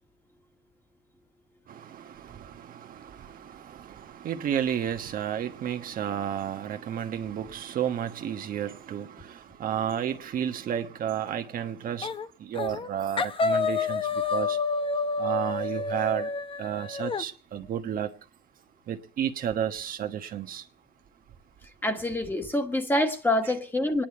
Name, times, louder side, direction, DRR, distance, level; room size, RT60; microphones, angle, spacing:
voice 1, 1.7-12.1 12.4-14.6 15.2-16.3 16.6-18.1 18.9-20.6, right 9 dB, 55° right, 1.3 m, -32 dB
sound 1, 12.0-12.3 12.5-12.9 13.2-17.2, left 4 dB, 30° left, 0.8 m, -29 dB
voice 2, 21.8-24.0, left 1 dB, 10° left, 1.8 m, -26 dB
26.5 x 10.5 x 4.6 m
cardioid pair, 110°, 17 cm